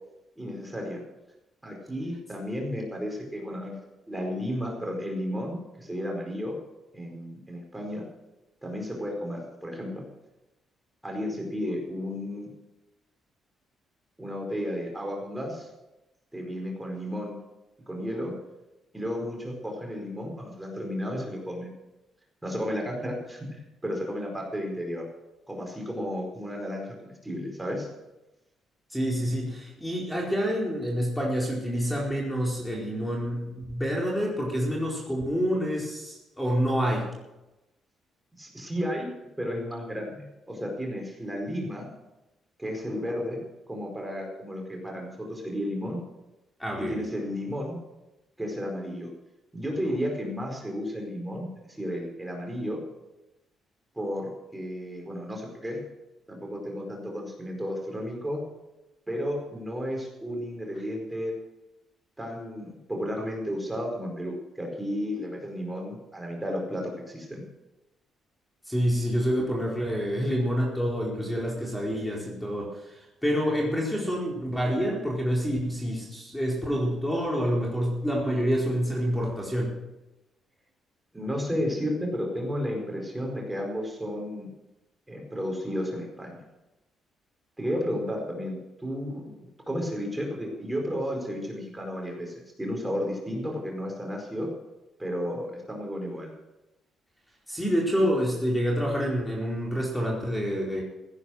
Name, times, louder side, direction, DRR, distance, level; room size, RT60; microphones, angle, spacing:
voice 1, 0.4-1.0 1.6-3.8 4.1-6.6 6.9-8.1 8.6-10.0 11.0-12.5 14.2-15.7 16.3-17.4 17.9-18.3 18.9-21.7 22.4-25.1 25.5-27.9 38.4-41.9 42.6-43.4 43.7-46.0 46.8-47.8 48.4-49.1 49.5-52.8 53.9-55.8 56.3-58.4 59.1-61.3 62.2-67.4 81.1-84.5 85.1-86.4 87.6-89.3 89.7-94.5 95.0-96.3, equal, 10° right, 0 dB, 4.7 m, -33 dB
voice 2, 28.9-37.1 46.6-47.1 68.7-79.7 97.5-100.8, equal, 5° left, -3 dB, 4.5 m, -27 dB
16.5 x 10.0 x 6.5 m, 0.97 s
cardioid pair, 90°, 0 cm